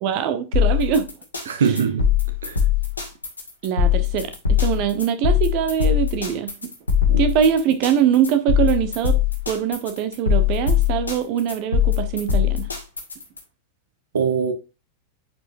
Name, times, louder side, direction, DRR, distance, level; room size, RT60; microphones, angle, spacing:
voice 1, 0.0-1.1 3.6-6.5 7.2-9.2 9.5-12.7, right 8 dB, 45° right, 1.1 m, -22 dB
sound 1, 0.5-13.4, left 9 dB, 80° left, 2.1 m, -21 dB
voice 2, 1.5-2.1 2.4-2.6 7.1-7.3 14.1-14.5, right 6 dB, 65° right, 1.0 m, -22 dB
10.5 x 5.1 x 2.6 m
figure-of-eight pair, 90°, 0 cm